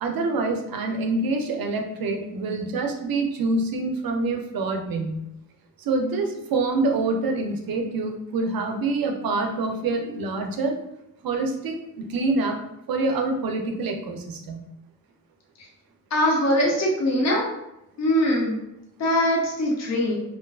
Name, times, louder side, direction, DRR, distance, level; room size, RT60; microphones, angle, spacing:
voice 1, 0.0-5.2 5.8-10.8 11.2-12.6 12.9-14.6, right 3 dB, 80° right, 3 dB, 0.5 m, -26 dB
voice 2, 16.1-17.4 18.0-18.5 19.0-20.2, equal, 50° left, -2 dB, 0.6 m, -22 dB
2.4 x 2.2 x 2.3 m, 0.85 s
wide cardioid pair, 95°, 35 cm